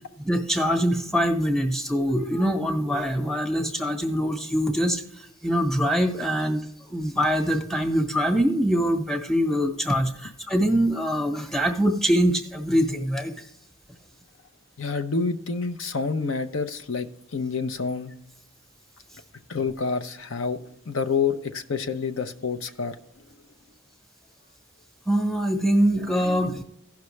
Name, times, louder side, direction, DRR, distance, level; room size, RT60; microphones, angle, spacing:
voice 1, 0.2-13.4 25.1-26.6, equal, ahead, 5 dB, 1.1 m, -24 dB
voice 2, 14.8-17.1 17.3-18.1 19.5-20.6 20.9-23.0, left 5 dB, 65° left, 8 dB, 0.6 m, -28 dB
16.0 x 5.8 x 3.2 m, 0.74 s
head